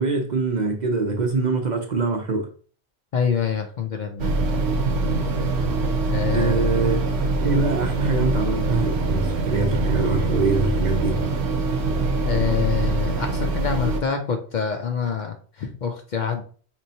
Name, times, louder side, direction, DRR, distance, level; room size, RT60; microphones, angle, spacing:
voice 1, 0.0-2.5 6.3-7.0 7.4-11.2, right 3 dB, 50° right, 0.7 m, -24 dB
voice 2, 3.1-4.3 6.1-6.6 12.2-16.4, left 6 dB, 55° left, 0.6 m, -26 dB
sound 1, 4.2-14.0, right 2 dB, 80° right, 0.9 m, -23 dB
4.2 x 3.0 x 2.7 m
omnidirectional pair, 1.1 m